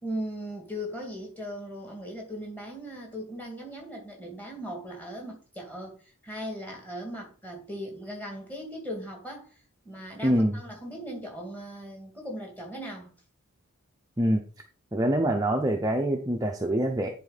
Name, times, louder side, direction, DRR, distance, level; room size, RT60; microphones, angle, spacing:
voice 1, 0.0-9.6 9.8-13.1, equal, 10° left, 2.4 m, -38 dB
voice 2, 10.2-10.6 14.2-14.4 14.9-17.1, right 1 dB, 15° right, 0.7 m, -25 dB
10.0 x 4.3 x 4.1 m
head